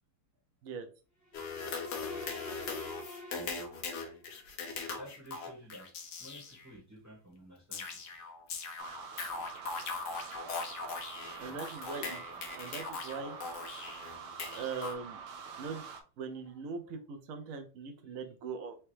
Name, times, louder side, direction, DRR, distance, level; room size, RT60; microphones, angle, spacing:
sound 1, 1.2-4.3, left 1 dB, 10° left, 1.2 m, -48 dB
sound 2, 1.3-6.7 7.7-14.9, left 4 dB, 60° left, 1.2 m, -40 dB
voice 1, 4.9-5.9 6.2-8.0 16.3-16.6 17.4-17.5 18.0-18.2, equal, 10° right, -4 dB, 1.7 m, -52 dB
sound 3, 8.8-16.0, right 6 dB, 85° right, 1.7 m, -46 dB
voice 2, 11.4-12.2 12.5-13.4 14.5-15.2 15.6-15.8 16.2-18.8, right 5 dB, 65° right, 6 dB, 0.8 m, -41 dB
5.0 x 3.0 x 3.2 m, 0.34 s
omnidirectional pair, 2.4 m